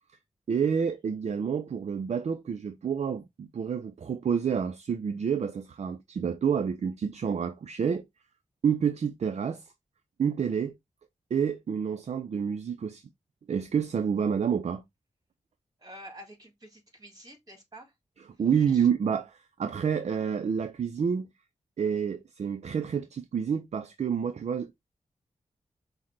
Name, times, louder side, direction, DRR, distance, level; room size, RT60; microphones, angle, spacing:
voice 1, 0.5-8.1 8.6-9.7 10.2-10.8 11.3-13.0 13.5-14.8 18.4-21.3 21.8-24.9, right 7 dB, 55° right, 0.4 m, -28 dB
voice 2, 15.8-17.9 18.5-18.9, equal, 30° right, 1.9 m, -48 dB
5.7 x 2.1 x 3.0 m
cardioid pair, 65°, 13 cm